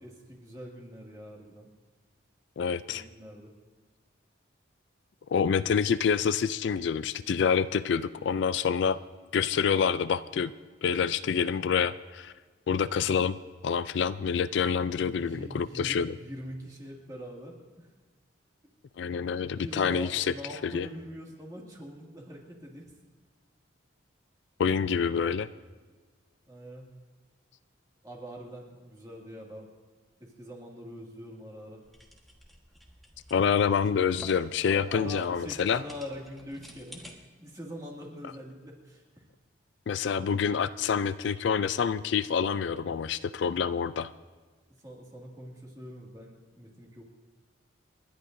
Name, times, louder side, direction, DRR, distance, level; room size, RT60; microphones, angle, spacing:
voice 1, 0.0-1.7 2.7-3.5 14.9-17.9 19.6-22.9 26.5-26.9 28.0-29.7 30.2-31.8 34.7-37.1 37.4-39.0 44.8-47.0, equal, 20° right, -2 dB, 2.2 m, -43 dB
voice 2, 2.6-3.0 5.3-9.0 9.3-10.5 10.8-12.3 12.7-13.4 13.6-16.1 19.0-20.3 20.6-20.9 24.6-25.5 33.3-35.8 39.9-44.1, left 6 dB, 60° left, 14 dB, 0.3 m, -27 dB
sound 1, 31.8-37.1, equal, ahead, 1.3 m, -51 dB
29.5 x 11.5 x 2.6 m, 1.4 s
head